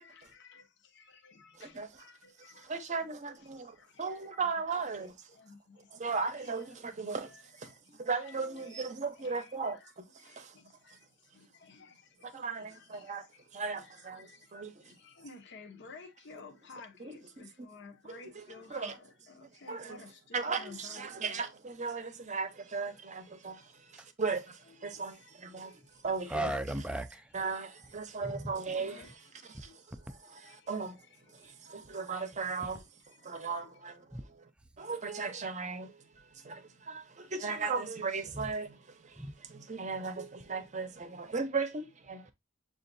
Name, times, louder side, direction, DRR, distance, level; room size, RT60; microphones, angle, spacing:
voice 1, 0.0-2.7 3.0-4.4 4.7-5.9 6.2-6.8 7.2-8.9 9.2-9.9 10.2-14.5 14.8-21.2 24.8-25.3 25.7-26.0 27.7-27.8 28.7-31.5 32.1-32.8 33.2-33.3 33.7-33.8, left 4 dB, 60° left, 0.7 m, -55 dB
voice 2, 1.6-2.0 2.6-5.1 5.9-7.3 7.6-7.7 8.0-10.5 12.2-13.3 13.5-14.9 17.0-17.4 18.0-18.4 18.7-18.9 19.7-20.0 20.3-26.5 27.3-29.0 29.5-29.7 30.1-31.0 31.3-32.8 33.2-34.1 34.8-36.0 36.4-42.3, right 4 dB, 40° right, 0.7 m, -37 dB
voice 3, 26.3-27.3 28.2-28.5 34.1-34.2 38.3-38.5 39.2-39.3, right 1 dB, 5° right, 0.3 m, -35 dB
6.8 x 2.4 x 2.5 m
head